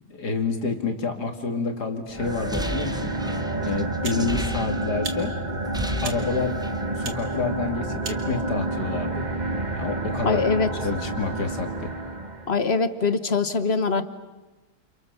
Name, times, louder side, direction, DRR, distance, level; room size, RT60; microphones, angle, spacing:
voice 1, 0.1-3.1 3.6-5.4 6.0-6.6 6.9-9.3 9.7-10.4 10.8-11.9, left 4 dB, 65° left, 5 dB, 3.0 m, -28 dB
sound 1, 2.1-12.6, right 2 dB, 25° right, 1.6 m, -29 dB
sound 2, 2.3-5.2 5.5-6.9, equal, 5° right, 0.9 m, -34 dB
sound 3, 4.0-4.3 5.0-5.2 6.0-6.2 7.0-7.2 8.0-8.2, right 4 dB, 70° right, 2.6 m, -35 dB
voice 2, 10.2-10.7 12.5-14.0, left 4 dB, 40° left, 12 dB, 1.3 m, -23 dB
29.5 x 29.0 x 6.8 m, 1.1 s
omnidirectional pair, 1.9 m